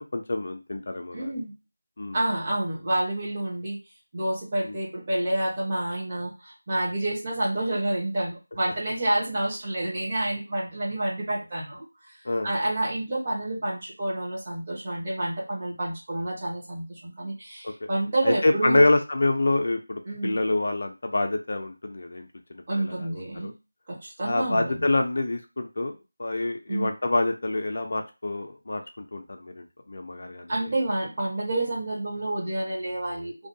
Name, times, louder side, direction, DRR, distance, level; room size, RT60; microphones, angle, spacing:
voice 1, 0.0-1.3 2.0-2.2 4.6-4.8 12.3-12.5 17.6-17.7 18.2-23.5 24.2-30.5, left 2 dB, 45° left, 5 dB, 0.3 m, -27 dB
voice 2, 1.1-1.5 2.1-3.8 4.1-12.1 12.4-18.9 20.1-20.4 22.7-23.5 23.9-24.8 26.7-26.9 30.5-33.5, right 1 dB, 30° right, -4 dB, 0.9 m, -29 dB
2.6 x 2.1 x 2.6 m, 0.28 s
figure-of-eight pair, 175°, 0 cm